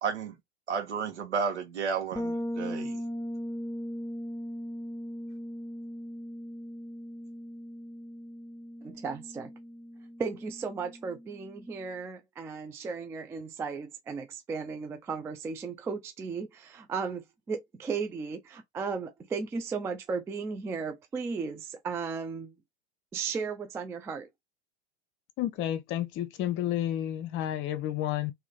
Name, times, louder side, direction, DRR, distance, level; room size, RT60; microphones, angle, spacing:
voice 1, 0.0-0.3 0.7-3.0, right 6 dB, 75° right, 1.6 m, -32 dB
Bass guitar, 2.1-11.8, equal, 10° left, 1.0 m, -39 dB
voice 2, 8.8-9.5 10.2-22.5 23.1-24.3, right 5 dB, 10° right, 0.3 m, -35 dB
voice 3, 25.4-28.3, left 12 dB, 35° left, 0.8 m, -31 dB
3.7 x 3.2 x 3.3 m
hypercardioid pair, 100°, 34 cm